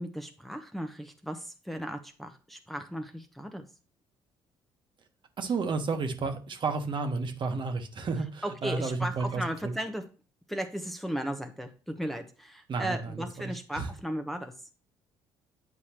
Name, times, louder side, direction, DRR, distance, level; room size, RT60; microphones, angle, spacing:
voice 1, 0.0-3.6 8.4-10.0 10.5-14.5, equal, ahead, 4 dB, 0.9 m, -36 dB
voice 2, 5.4-9.7 12.7-13.9, right 4 dB, 50° right, 5 dB, 1.3 m, -32 dB
8.2 x 4.8 x 3.0 m, 0.35 s
supercardioid pair, 70°, 11 cm